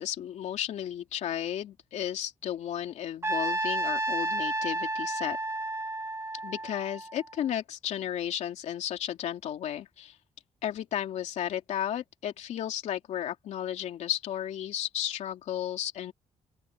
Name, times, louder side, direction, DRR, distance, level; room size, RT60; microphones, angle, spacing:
voice 1, 0.0-5.4 6.4-10.2 10.6-16.1, left 10 dB, 85° left, 3.1 m, -33 dB
Trumpet, 3.2-7.4, right 2 dB, 25° right, 2.5 m, -31 dB
open air
cardioid pair, 105°, 12 cm